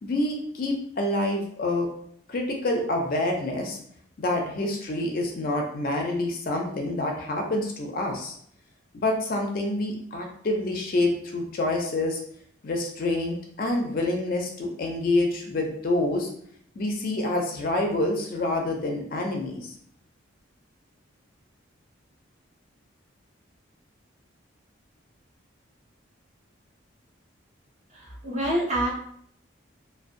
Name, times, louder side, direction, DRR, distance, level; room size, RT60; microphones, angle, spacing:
voice 1, 0.0-1.9 2.3-3.8 4.2-8.4 8.9-12.2 12.6-16.3 16.8-19.7, left 2 dB, 45° left, 1 dB, 0.4 m, -27 dB
voice 2, 27.9-28.9, right 1 dB, 35° right, -3 dB, 0.6 m, -27 dB
2.6 x 2.1 x 2.5 m, 0.65 s
head